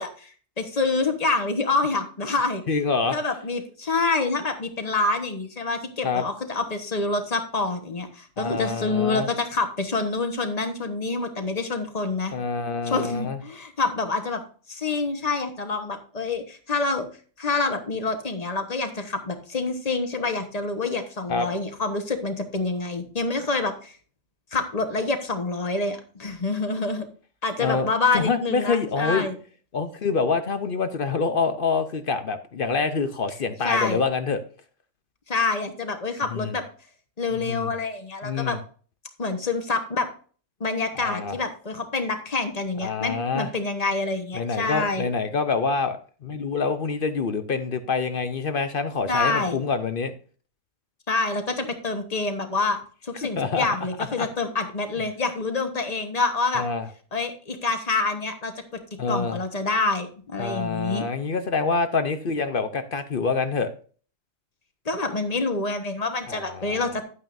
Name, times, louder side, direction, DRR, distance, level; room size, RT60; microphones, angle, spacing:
voice 1, 0.0-2.6 3.1-12.3 12.9-14.4 14.7-17.1 17.4-23.9 24.5-27.0 27.4-29.3 33.6-34.0 35.3-36.6 37.2-38.6 39.2-40.1 40.6-45.1 49.1-49.6 51.1-52.8 53.0-56.6 57.1-58.5 59.1-61.1 64.8-67.0, left 3 dB, 30° left, 6 dB, 1.3 m, -27 dB
voice 2, 2.7-3.2 6.0-6.2 8.4-9.3 12.3-13.4 21.3-21.5 27.6-27.9 28.1-29.3 29.7-34.4 36.3-36.6 37.3-37.7 38.2-38.6 40.9-41.4 42.8-43.5 44.3-50.1 53.3-53.7 54.0-54.3 56.5-56.9 59.0-59.4 60.4-63.7 66.3-66.8, left 4 dB, 50° left, 10 dB, 0.8 m, -26 dB
11.0 x 9.1 x 2.6 m, 0.40 s
omnidirectional pair, 1.3 m